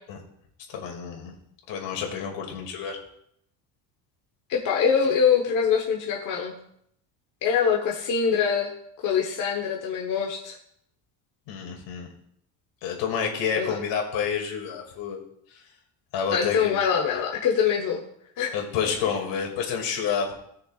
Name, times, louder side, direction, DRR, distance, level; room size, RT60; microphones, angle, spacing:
voice 1, 0.7-1.3 1.7-3.0 11.5-12.1 12.8-15.2 16.1-16.8 18.5-20.3, left 7 dB, 75° left, 1 dB, 2.3 m, -29 dB
voice 2, 4.5-6.6 7.4-8.7 9.0-10.6 13.6-13.8 16.3-18.0 18.4-18.5, left 7 dB, 45° left, -1 dB, 1.1 m, -24 dB
17.5 x 6.6 x 2.4 m, 0.72 s
cardioid pair, 175°, 44 cm